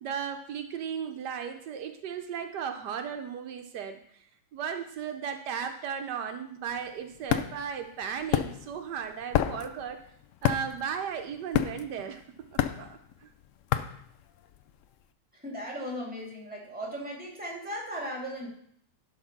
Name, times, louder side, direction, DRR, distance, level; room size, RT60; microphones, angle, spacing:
voice 1, 0.0-4.3 4.5-10.0 10.4-12.2 12.5-13.3, right 7 dB, 80° right, 6 dB, 1.3 m, -36 dB
sound 1, 6.7-14.8, left 11 dB, 70° left, 0.7 m, -30 dB
voice 2, 15.4-18.5, equal, 5° right, -2 dB, 2.4 m, -37 dB
11.5 x 3.9 x 5.8 m, 0.66 s
omnidirectional pair, 1.8 m